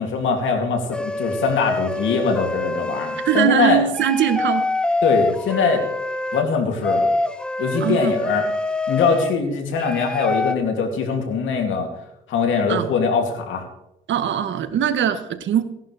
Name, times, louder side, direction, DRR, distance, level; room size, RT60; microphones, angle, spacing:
voice 1, 0.0-3.8 5.0-5.8 6.3-7.1 7.6-8.5 8.9-11.9 12.3-13.6, left 5 dB, 80° left, 3 dB, 2.8 m, -22 dB
sound 1, 0.9-3.5 3.9-6.5 6.8-9.3 9.8-10.6, left 2 dB, 5° left, 1.0 m, -25 dB
voice 2, 3.2-4.7 7.8-8.1 12.7-12.9 14.1-15.6, right 9 dB, 70° right, 11 dB, 1.2 m, -21 dB
18.0 x 11.0 x 3.4 m, 0.87 s
cardioid pair, 90°, 20 cm